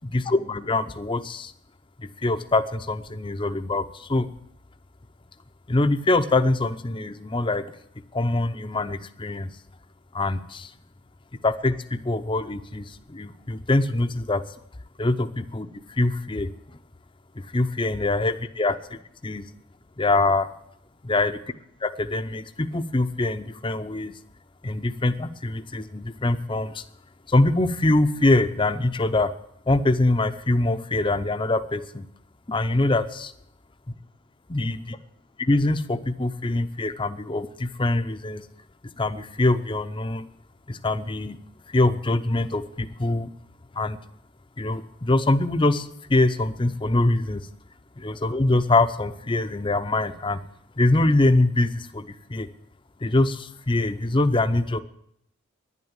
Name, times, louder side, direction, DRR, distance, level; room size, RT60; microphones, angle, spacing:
voice 1, 0.1-1.5 2.0-4.3 5.7-7.6 8.1-9.5 10.1-10.7 11.4-14.4 15.0-16.5 17.4-19.5 20.0-20.5 21.1-21.4 21.8-24.1 24.6-26.8 27.3-29.3 29.7-32.0 32.5-33.3 34.5-35.0 35.4-38.4 39.0-40.3 40.7-41.4 41.7-43.3 43.8-44.0 44.6-47.4 48.0-50.4 50.8-52.5 53.0-54.8, left 2 dB, 25° left, 10 dB, 0.6 m, -24 dB
11.0 x 10.5 x 8.8 m, 0.75 s
head